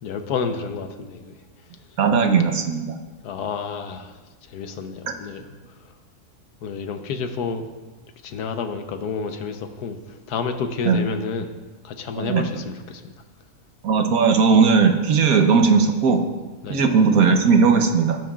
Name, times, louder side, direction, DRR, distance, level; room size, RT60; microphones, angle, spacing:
voice 1, 0.0-1.3 3.2-4.1 4.5-5.5 6.6-7.6 8.2-10.0 10.3-11.5 11.8-13.0 16.6-16.8, left 5 dB, 80° left, 7 dB, 1.3 m, -29 dB
voice 2, 2.0-3.0 10.8-11.0 12.2-12.4 13.8-16.2 16.7-18.2, right 5 dB, 65° right, 6 dB, 1.3 m, -17 dB
16.5 x 9.3 x 2.4 m, 1.2 s
omnidirectional pair, 1.7 m